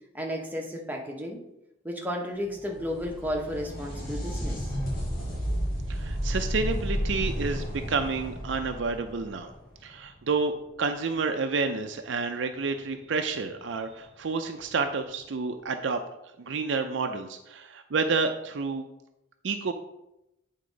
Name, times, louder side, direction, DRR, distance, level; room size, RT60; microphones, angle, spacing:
voice 1, 0.1-1.4 1.8-4.6, equal, 10° right, 0 dB, 0.9 m, -33 dB
sound 1, 2.5-10.1 13.5-13.6 14.6-14.7, equal, 45° left, 2.2 m, -32 dB
voice 2, 5.9-9.5 9.8-10.5 10.8-16.0 16.4-18.9 19.4-19.7, right 4 dB, 65° right, 6 dB, 0.5 m, -29 dB
8.6 x 3.6 x 5.1 m, 0.88 s
head